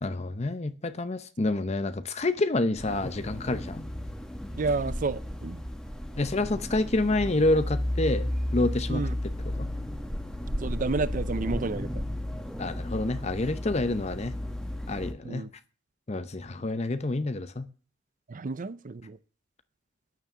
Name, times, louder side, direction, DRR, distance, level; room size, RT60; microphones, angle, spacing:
voice 1, 0.0-3.9 6.2-9.0 9.4-9.7 12.6-14.3 14.9-15.4 16.1-17.7, left 2 dB, 35° left, 0.7 m, -28 dB
sound 1, 2.8-15.1, left 1 dB, 5° left, 1.5 m, -33 dB
voice 2, 4.6-5.6 8.9-9.1 10.6-11.9 15.2-15.5 18.3-19.2, right 3 dB, 45° right, 0.5 m, -31 dB
9.7 x 9.2 x 6.8 m
head